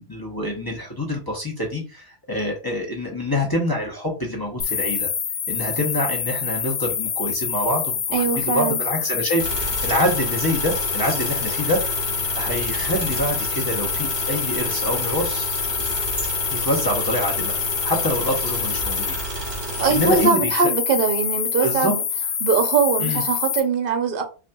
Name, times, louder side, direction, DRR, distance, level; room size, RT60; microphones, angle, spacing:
voice 1, 0.0-5.1 5.5-12.1 12.4-15.5 16.5-17.5 17.8-19.2 19.9-20.7 21.6-21.9 23.0-23.2, equal, 25° left, 0.8 m, -26 dB
sound 1, 4.6-23.6, left 8 dB, 75° left, 0.8 m, -26 dB
voice 2, 8.1-8.8 19.8-22.0 22.4-24.2, right 5 dB, 55° right, 0.9 m, -21 dB
sound 2, 9.4-20.3, right 3 dB, 40° right, 1.4 m, -31 dB
5.3 x 2.5 x 2.3 m
omnidirectional pair, 1.1 m